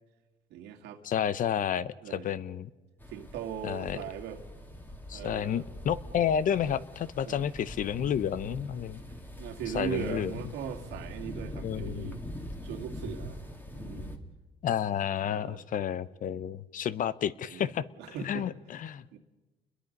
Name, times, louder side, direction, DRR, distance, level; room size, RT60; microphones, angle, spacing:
voice 1, 0.5-1.0 2.0-2.3 3.1-4.4 5.1-5.6 7.3-7.5 9.4-12.2 12.6-13.4 13.7-14.1 15.3-15.6 17.5-17.7 18.0-18.5 19.1-19.2, right 9 dB, 85° right, 3 dB, 2.3 m, -39 dB
voice 2, 1.0-2.7 3.6-4.0 5.1-9.0 9.7-10.3 11.6-12.1 14.6-17.8 18.2-19.2, left 9 dB, 50° left, 17 dB, 0.9 m, -31 dB
sound 1, 3.0-14.2, equal, 10° left, 2.5 m, -43 dB
29.5 x 22.0 x 5.4 m, 1.1 s
cardioid pair, 110°, 17 cm